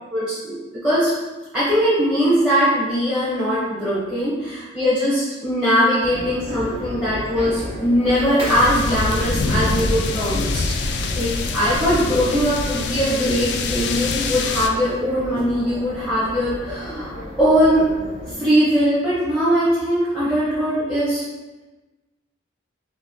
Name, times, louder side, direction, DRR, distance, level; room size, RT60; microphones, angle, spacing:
voice 1, 0.1-0.5 0.8-1.1 1.5-17.1 17.4-17.8 18.2-21.2, equal, 5° right, -12 dB, 0.9 m, -20 dB
sound 1, 6.0-18.3, equal, 30° right, 0.6 m, -34 dB
sound 2, 8.4-14.7, left 3 dB, 60° left, 0.3 m, -25 dB
4.0 x 2.9 x 2.7 m, 1.2 s
head